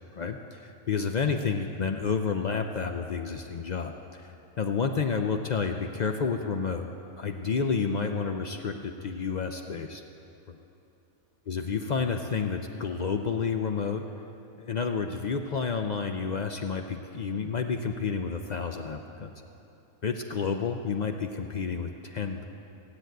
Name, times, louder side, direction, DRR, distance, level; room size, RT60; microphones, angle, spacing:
voice 1, 0.1-4.3 4.6-6.9 7.2-10.0 10.5-10.6 11.5-14.0 14.6-19.3 20.0-22.4, left 5 dB, 85° left, 5 dB, 0.3 m, -30 dB
16.0 x 8.0 x 9.1 m, 2.9 s
omnidirectional pair, 1.6 m